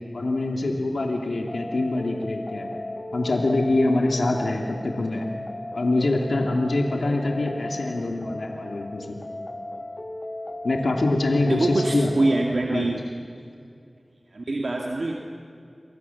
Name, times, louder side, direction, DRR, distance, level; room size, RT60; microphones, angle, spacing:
voice 1, 0.1-2.7 3.1-5.3 5.7-9.2 10.6-12.1 12.7-12.9, left 2 dB, 85° left, 1 dB, 2.8 m, -24 dB
sound 1, 1.5-12.5, left 1 dB, 40° left, 2.6 m, -36 dB
voice 2, 11.4-13.0 14.3-15.2, right 2 dB, 75° right, 0 dB, 2.3 m, -25 dB
29.5 x 25.5 x 7.2 m, 2.5 s
wide cardioid pair, 40°, 0 cm